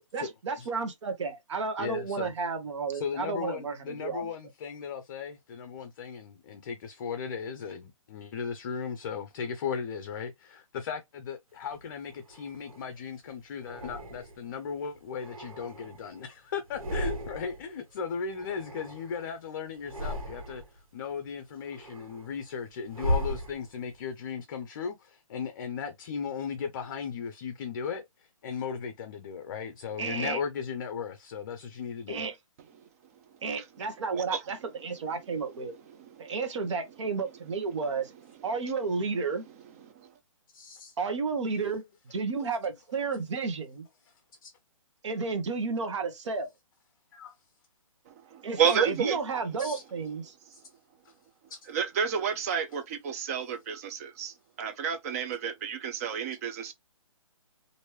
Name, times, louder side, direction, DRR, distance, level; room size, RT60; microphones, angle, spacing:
voice 1, 0.1-4.3 30.0-30.4 32.1-32.4 33.4-35.7 36.2-38.1 38.4-39.4 41.0-41.8 42.1-43.9 45.0-46.5 48.4-50.3, right 4 dB, 60° right, 1.0 m, -32 dB
voice 2, 1.8-2.3 2.9-32.2 40.5-40.9 44.4-44.5 47.1-47.3 49.6-49.8 50.5-50.6 51.0-51.1 51.5-51.6, left 6 dB, 40° left, 0.6 m, -37 dB
sound 1, 11.7-12.9 13.6-14.6 15.0-16.3 16.6-17.7 18.0-19.4 19.8-20.8 21.3-24.0, equal, 85° right, 1.4 m, -36 dB
voice 3, 48.1-49.2 51.7-56.7, right 7 dB, 25° right, 0.5 m, -30 dB
3.0 x 2.6 x 3.0 m
hypercardioid pair, 150°, 18 cm